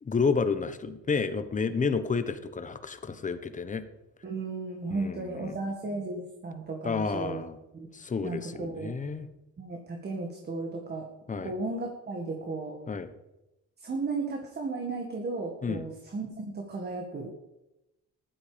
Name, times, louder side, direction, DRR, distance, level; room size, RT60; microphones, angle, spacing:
voice 1, 0.0-3.8 4.9-5.6 6.8-7.6 7.9-9.3 11.3-11.5 12.9-13.1 15.6-15.9, left 5 dB, 25° left, 11 dB, 1.1 m, -30 dB
voice 2, 4.2-7.4 7.7-7.9 8.2-8.9 9.6-11.1 11.4-12.8 13.8-17.3, right 3 dB, 30° right, 1 dB, 2.0 m, -35 dB
15.0 x 11.5 x 5.2 m, 0.95 s
cardioid pair, 140°, 31 cm